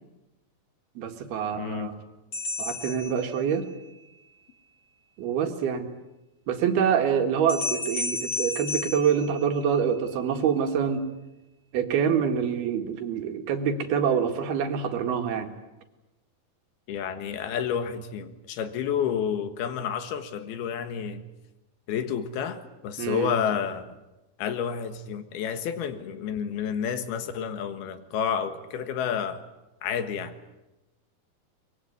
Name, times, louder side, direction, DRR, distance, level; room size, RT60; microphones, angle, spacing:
voice 1, 1.0-2.0 2.6-3.7 5.2-5.9 6.5-11.0 11.7-15.5 23.0-23.3, right 7 dB, 85° right, 6 dB, 3.8 m, -26 dB
voice 2, 1.6-1.9 16.9-21.2 21.9-23.9 24.4-29.4 29.8-30.3, left 7 dB, 85° left, 10 dB, 3.5 m, -30 dB
sound 1, 2.3-3.9 7.5-10.0, left 3 dB, 40° left, 5.3 m, -33 dB
23.5 x 22.0 x 9.7 m, 1.0 s
omnidirectional pair, 4.3 m